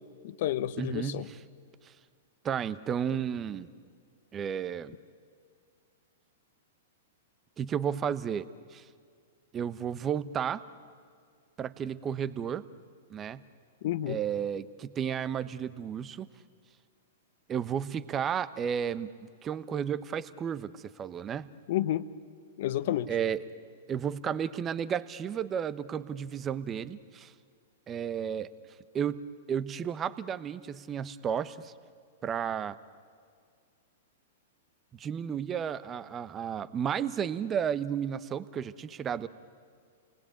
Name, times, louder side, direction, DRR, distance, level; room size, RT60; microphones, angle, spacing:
voice 1, 0.2-1.3 13.8-14.2 21.7-22.1 22.6-23.1, left 12 dB, 60° left, 14 dB, 1.0 m, -30 dB
voice 2, 0.8-1.4 1.8-1.9 2.4-3.7 4.3-4.9 7.6-8.5 8.7-8.8 9.5-10.6 11.6-12.6 13.1-13.4 14.1-16.3 17.5-21.5 23.1-23.4 23.9-27.3 27.9-28.5 28.9-29.2 29.5-31.7 32.2-32.8 34.9-39.3, right 8 dB, 25° right, 15 dB, 0.9 m, -33 dB
29.5 x 19.5 x 8.7 m, 2.1 s
hypercardioid pair, 110°, 0 cm